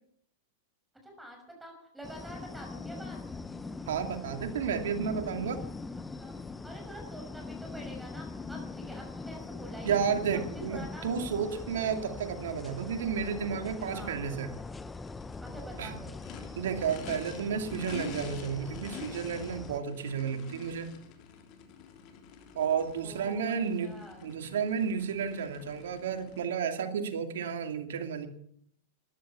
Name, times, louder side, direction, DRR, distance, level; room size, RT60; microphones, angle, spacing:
voice 1, 1.0-3.2 6.2-6.4 6.6-11.2 11.4-11.7 13.9-14.2 15.4-16.1 23.0-24.3, right 1 dB, 5° right, 2 dB, 5.9 m, -47 dB
sound 1, 2.0-19.8, left 3 dB, 10° left, 0.8 m, -42 dB
voice 2, 3.9-5.6 9.8-14.5 15.8-15.9 16.6-20.9 22.5-23.9 24.2-28.3, right 7 dB, 80° right, 6 dB, 2.6 m, -32 dB
Race car auto racing / Idling / Accelerating revving vroom, 14.4-26.4, left 7 dB, 45° left, 3.2 m, -47 dB
14.0 x 11.0 x 8.5 m, 0.66 s
hypercardioid pair, 125°, 0 cm